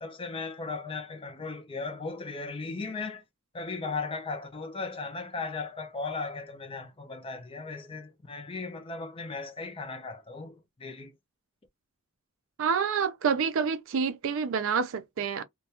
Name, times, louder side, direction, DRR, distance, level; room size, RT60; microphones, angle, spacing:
voice 1, 0.0-3.2 3.5-11.1, left 4 dB, 25° left, 0.5 m, -37 dB
voice 2, 12.6-15.4, right 6 dB, 60° right, 0.4 m, -28 dB
2.3 x 2.2 x 2.7 m
head